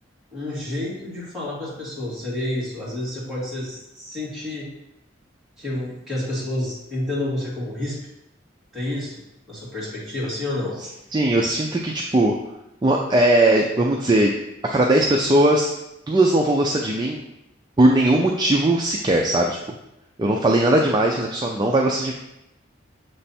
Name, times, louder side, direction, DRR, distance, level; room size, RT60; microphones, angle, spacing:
voice 1, 0.3-4.7 5.6-8.0 8.7-9.1 9.5-10.7, left 1 dB, 5° right, -9 dB, 2.1 m, -29 dB
voice 2, 11.1-12.3 12.8-14.3 14.6-15.7 16.1-17.2 17.8-19.6 20.2-22.1, right 1 dB, 20° right, 0 dB, 0.4 m, -19 dB
6.9 x 3.3 x 4.2 m, 0.89 s
head